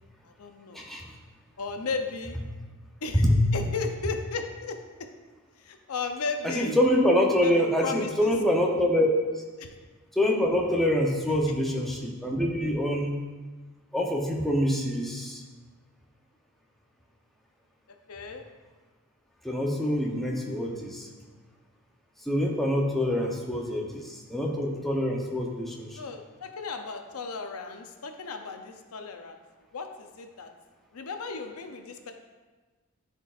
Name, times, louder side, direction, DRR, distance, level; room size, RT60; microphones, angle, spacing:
voice 1, 0.2-0.8 1.6-2.4 3.0-3.2 3.5-4.8 5.6-6.8 7.4-8.3 9.6-9.7 11.3-11.4 18.1-18.4 23.2-23.3 23.7-23.8 26.0-29.4 29.7-30.5 30.9-32.1, left 4 dB, 75° left, 5 dB, 0.6 m, -35 dB
voice 2, 0.7-1.1 3.1-3.4 6.4-9.3 10.1-13.2 13.9-15.4 19.4-21.1 22.3-26.0, equal, ahead, -1 dB, 0.7 m, -25 dB
12.5 x 4.4 x 2.5 m, 1.3 s
head